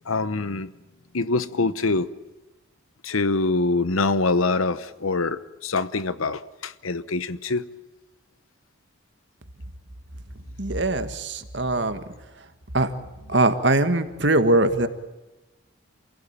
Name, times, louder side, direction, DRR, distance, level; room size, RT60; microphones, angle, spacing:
voice 1, 0.1-0.7 1.1-2.1 3.0-7.6, left 3 dB, 85° left, 15 dB, 1.0 m, -24 dB
voice 2, 10.6-12.0 12.7-12.9 13.3-14.9, right 2 dB, 55° right, 9 dB, 1.7 m, -21 dB
28.0 x 17.0 x 8.8 m, 1.1 s
head